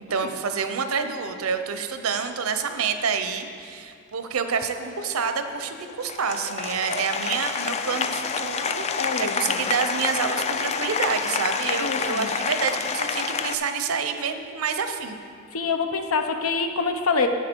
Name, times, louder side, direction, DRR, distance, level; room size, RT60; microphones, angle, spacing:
voice 1, 0.0-15.2, right 5 dB, 80° right, 8 dB, 0.7 m, -28 dB
Applause, 4.4-13.6, left 6 dB, 30° left, 0.3 m, -28 dB
voice 2, 8.9-9.6 11.8-12.3 15.5-17.3, left 4 dB, 85° left, 6 dB, 0.8 m, -26 dB
10.5 x 7.3 x 4.5 m, 2.2 s
head